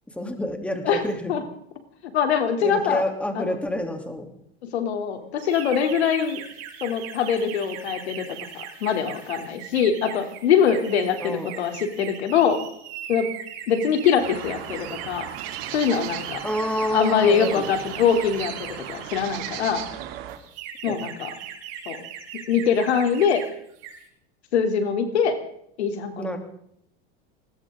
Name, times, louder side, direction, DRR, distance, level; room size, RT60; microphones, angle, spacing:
voice 1, 0.1-1.3 2.6-4.3 11.2-11.5 16.4-17.6 20.9-21.0 26.2-26.4, left 1 dB, 5° left, 5 dB, 2.9 m, -28 dB
voice 2, 2.1-3.0 3.3-3.5 4.6-6.4 6.8-8.3 8.5-12.6 13.1-13.3 13.7-15.3 15.7-16.4 16.9-19.8 20.8-21.3 21.9-22.0 22.5-23.4 24.5-25.4 25.8-26.4, left 7 dB, 90° left, 6 dB, 3.1 m, -23 dB
sound 1, 5.4-19.7 20.3-23.5 23.7-24.1, right 9 dB, 50° right, 6.5 m, -39 dB
sound 2, 14.2-20.4, right 11 dB, 70° right, 2.8 m, -37 dB
20.0 x 19.5 x 3.7 m, 0.72 s
supercardioid pair, 125°, 32 cm